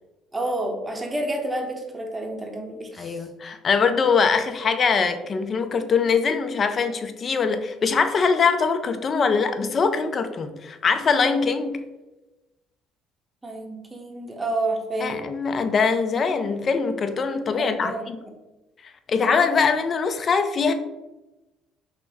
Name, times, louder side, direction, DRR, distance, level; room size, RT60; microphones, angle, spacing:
voice 1, 0.3-3.2 13.4-15.2 17.6-18.4, right 2 dB, 15° right, 2 dB, 0.7 m, -29 dB
voice 2, 3.0-11.8 15.0-18.2 19.1-20.7, left 5 dB, 35° left, 8 dB, 0.4 m, -22 dB
5.8 x 2.1 x 3.4 m, 1.1 s
cardioid pair, 130°, 0 cm